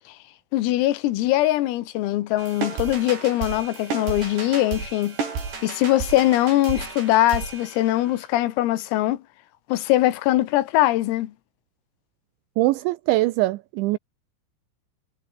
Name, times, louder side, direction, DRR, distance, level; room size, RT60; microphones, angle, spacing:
voice 1, 0.5-5.2 5.6-9.2 9.7-11.3, left 15 dB, 85° left, 4.2 m, -22 dB
sound 1, 2.4-8.2, right 5 dB, 55° right, 8.8 m, -32 dB
voice 2, 12.6-14.0, right 18 dB, 80° right, 2.7 m, -22 dB
omnidirectional pair, 5.9 m